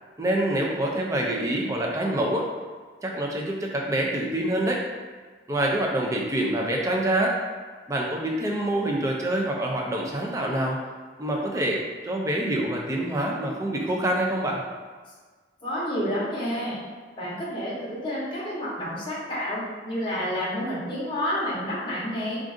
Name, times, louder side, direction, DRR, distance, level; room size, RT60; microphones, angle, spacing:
voice 1, 0.2-2.5 3.0-4.8 5.5-7.4 7.9-10.8 11.2-14.6, right 1 dB, 20° right, -1 dB, 0.4 m, -26 dB
voice 2, 15.6-16.8 17.2-22.4, equal, 30° left, -7 dB, 0.8 m, -29 dB
2.5 x 2.4 x 3.6 m, 1.4 s
head